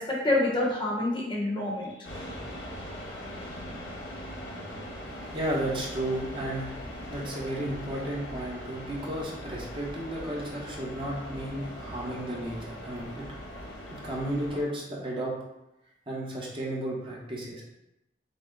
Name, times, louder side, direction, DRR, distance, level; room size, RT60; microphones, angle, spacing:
voice 1, 0.0-2.1, left 2 dB, 25° left, -4 dB, 0.9 m, -27 dB
sound 1, 2.0-14.6, equal, 85° left, 1.3 m, -41 dB
voice 2, 5.3-6.7 7.0-13.3 13.9-15.3 16.1-17.6, right 1 dB, 30° right, -5 dB, 1.0 m, -33 dB
5.4 x 2.2 x 3.9 m, 0.89 s
head